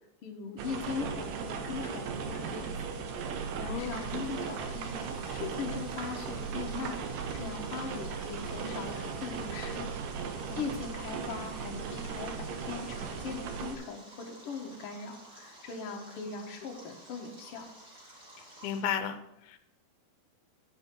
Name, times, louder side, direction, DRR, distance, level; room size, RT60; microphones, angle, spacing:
voice 1, 0.2-3.1 3.6-5.0 5.3-7.0 7.3-9.9 10.6-17.7, left 5 dB, 55° left, 1 dB, 1.8 m, -40 dB
sound 1, 0.6-13.7, right 5 dB, 70° right, 2.5 m, -37 dB
voice 2, 3.7-4.0 10.5-10.8 18.6-19.6, left 9 dB, 85° left, 10 dB, 2.6 m, -34 dB
Stream, 3.8-18.8, right 1 dB, 30° right, 3.2 m, -53 dB
10.5 x 9.8 x 3.8 m, 0.86 s
omnidirectional pair, 4.3 m